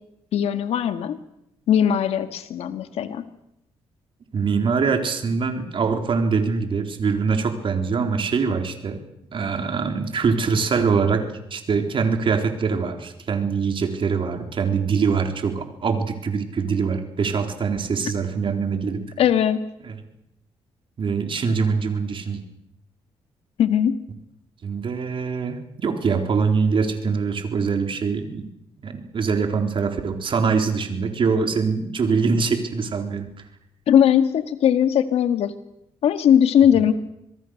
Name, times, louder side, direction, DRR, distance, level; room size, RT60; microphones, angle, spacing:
voice 1, 0.3-1.2 1.7-3.2 19.2-19.6 23.6-24.0 33.9-35.5 36.0-36.9, left 9 dB, 80° left, 10 dB, 1.8 m, -19 dB
voice 2, 4.3-9.0 9.3-19.0 19.8-20.0 21.0-22.4 24.6-28.5 28.8-33.3, right 5 dB, 55° right, 5 dB, 4.0 m, -23 dB
25.5 x 21.0 x 6.6 m, 0.82 s
supercardioid pair, 65°, 10 cm